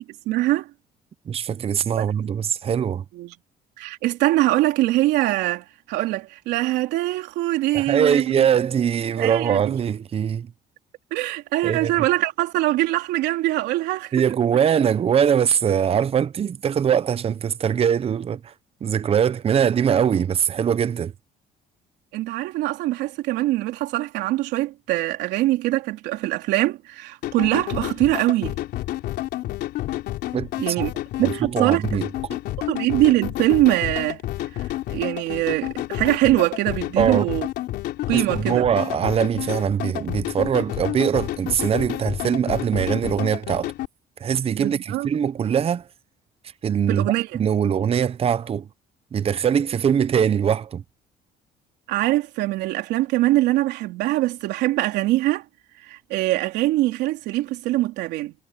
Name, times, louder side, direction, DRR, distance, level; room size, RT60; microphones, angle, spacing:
voice 1, 0.3-0.7 2.0-2.1 3.1-3.4 3.8-8.5 9.2-9.7 11.1-14.1 22.1-28.6 30.6-30.9 31.2-31.8 32.7-34.2 34.6-37.5 38.1-38.6 44.6-45.1 46.9-47.3 51.9-55.4 55.8-58.3, right 17 dB, 90° right, 3.4 m, -23 dB
voice 2, 1.3-3.0 7.7-10.5 11.6-11.9 14.1-18.5 18.8-21.1 30.3-30.5 30.8-30.9 31.2-32.1 37.0-37.3 38.1-43.7 44.2-45.8 46.6-47.1 47.3-48.7 49.1-50.8, right 8 dB, 35° right, 0.7 m, -22 dB
sound 1, 27.2-43.9, left 15 dB, 80° left, 3.8 m, -30 dB
cardioid pair, 110°, 17 cm